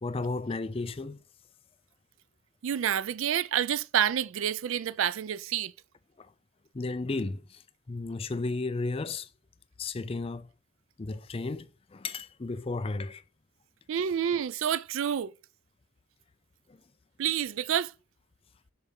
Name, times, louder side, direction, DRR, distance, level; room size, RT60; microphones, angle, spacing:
voice 1, 0.0-1.2 6.2-6.3 6.7-9.3 9.8-10.5 11.0-13.2 16.7-16.8, left 3 dB, 25° left, 0.4 m, -34 dB
voice 2, 2.6-5.7 13.9-15.3 17.2-17.9, right 9 dB, 65° right, 0.4 m, -28 dB
6.7 x 3.4 x 5.3 m
head